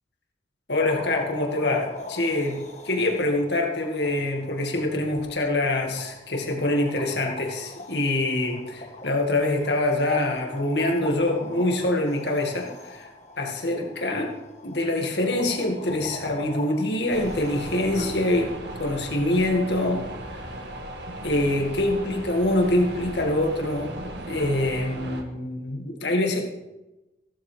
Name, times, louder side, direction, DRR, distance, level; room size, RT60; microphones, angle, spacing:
voice 1, 0.7-14.3 14.6-18.5 18.8-20.5 21.2-24.0 24.3-26.4, left 1 dB, 75° left, 1 dB, 2.1 m, -25 dB
sound 1, 0.8-18.4, left 2 dB, 40° left, 1.4 m, -41 dB
sound 2, 17.1-25.2, right 1 dB, 75° right, 1.8 m, -36 dB
15.5 x 12.0 x 3.5 m, 1.0 s
head